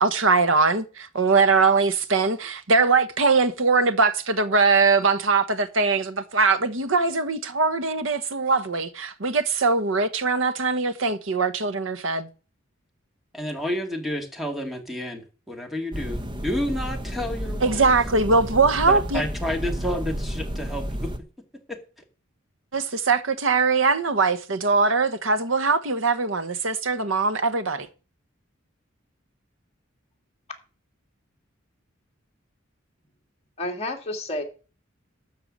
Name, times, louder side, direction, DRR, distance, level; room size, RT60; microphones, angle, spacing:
voice 1, 0.0-12.3 17.6-19.2 22.7-27.9, right 4 dB, 75° right, 1.1 m, -21 dB
voice 2, 13.3-17.9 18.9-21.1 21.7-21.8, equal, ahead, 2.2 m, -30 dB
sound 1, 15.9-21.2, equal, 25° right, 1.0 m, -31 dB
voice 3, 33.6-34.4, left 1 dB, 30° left, 2.5 m, -30 dB
12.5 x 4.6 x 8.6 m
head